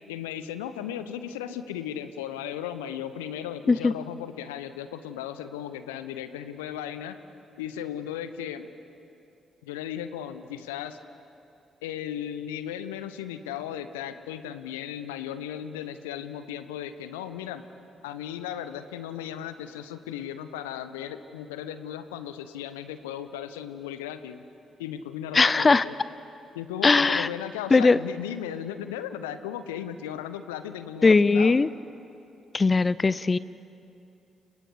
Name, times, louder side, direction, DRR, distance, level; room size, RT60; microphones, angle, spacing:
voice 1, 0.1-7.2 7.6-8.7 9.6-11.0 11.8-17.6 18.0-24.4 24.8-25.9 26.5-31.6, left 10 dB, 75° left, 12 dB, 0.8 m, -36 dB
voice 2, 25.3-25.8 26.8-27.3 27.7-28.0 31.0-31.7 32.5-33.4, left 4 dB, 30° left, 18 dB, 0.5 m, -19 dB
30.0 x 28.5 x 5.0 m, 2.6 s
figure-of-eight pair, 40°, 0 cm